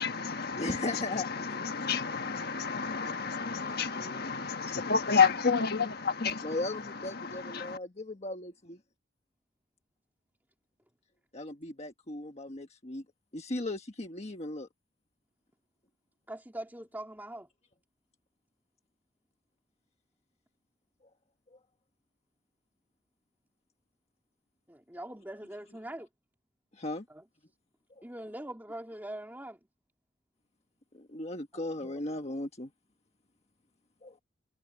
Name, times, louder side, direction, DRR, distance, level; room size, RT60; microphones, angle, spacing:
voice 1, 0.0-7.8, left 5 dB, 55° left, 1.4 m, -30 dB
voice 2, 0.6-1.3 6.4-8.8 11.3-13.0 13.3-14.7 26.7-27.0 28.0-28.1 30.9-32.7 34.0-34.2, left 2 dB, 35° left, 1.4 m, -37 dB
voice 3, 3.6-4.2 16.3-17.5 24.7-26.1 27.1-27.2 28.0-29.6 31.5-32.0, right 1 dB, 10° right, 2.8 m, -43 dB
head